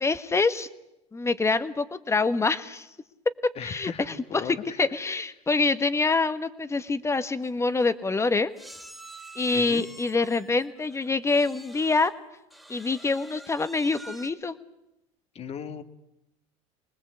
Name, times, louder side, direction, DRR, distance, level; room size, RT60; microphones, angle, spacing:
voice 1, 0.0-0.7 1.1-2.9 3.6-3.9 4.8-8.5 9.3-12.1 12.7-14.5, left 3 dB, 15° left, 12 dB, 1.6 m, -25 dB
voice 2, 3.6-4.9 9.5-9.8 15.3-15.8, left 7 dB, 40° left, 10 dB, 2.0 m, -37 dB
sound 1, 7.1-7.2 7.4-7.6 8.6-12.1 12.5-14.3, right 1 dB, ahead, 2.7 m, -47 dB
25.0 x 20.0 x 8.3 m, 0.88 s
supercardioid pair, 95°, 16 cm